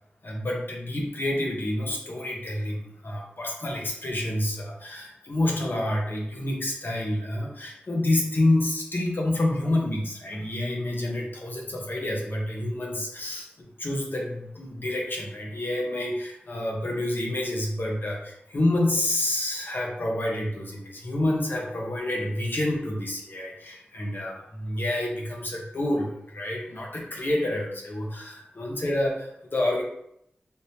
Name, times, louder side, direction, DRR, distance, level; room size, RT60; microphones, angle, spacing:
voice 1, 0.2-29.8, left 1 dB, 60° left, -2 dB, 0.8 m, -28 dB
3.5 x 2.7 x 2.8 m, 0.76 s
cardioid pair, 45°, 4 cm